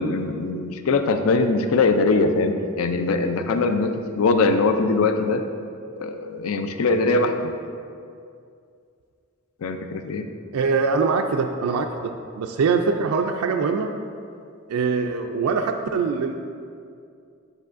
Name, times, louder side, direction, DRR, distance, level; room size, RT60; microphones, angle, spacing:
voice 1, 0.0-5.4 6.0-7.3 9.6-10.3, left 3 dB, 75° left, 7 dB, 0.4 m, -21 dB
voice 2, 10.5-13.9 14.7-16.3, right 5 dB, 85° right, 4 dB, 0.3 m, -23 dB
8.1 x 5.4 x 2.5 m, 2.4 s
head